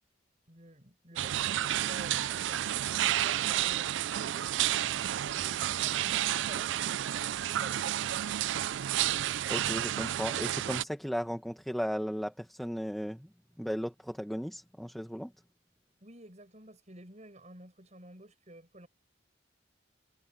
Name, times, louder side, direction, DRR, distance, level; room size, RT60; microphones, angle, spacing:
voice 1, 0.5-4.5 5.3-8.1 16.0-18.9, right 1 dB, 35° right, 6.6 m, -51 dB
sound 1, 1.2-10.8, right 12 dB, 70° right, 0.3 m, -31 dB
voice 2, 9.5-13.3 13.6-15.3, equal, ahead, 1.2 m, -35 dB
head